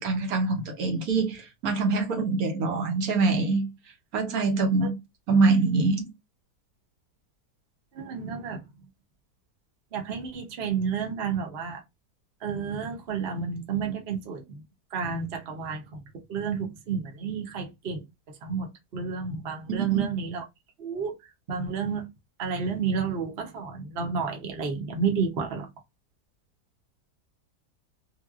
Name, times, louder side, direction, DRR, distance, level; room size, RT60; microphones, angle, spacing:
voice 1, 0.0-3.7 4.1-5.0 5.3-6.1 19.7-20.1, right 3 dB, 65° right, 1.2 m, -24 dB
voice 2, 7.9-8.6 9.9-11.8 12.4-14.6 14.9-16.0 16.3-18.0 18.4-20.4 20.8-21.1 21.5-22.0 22.4-25.7, right 6 dB, 45° right, 0.9 m, -30 dB
3.2 x 2.7 x 2.4 m
omnidirectional pair, 1.7 m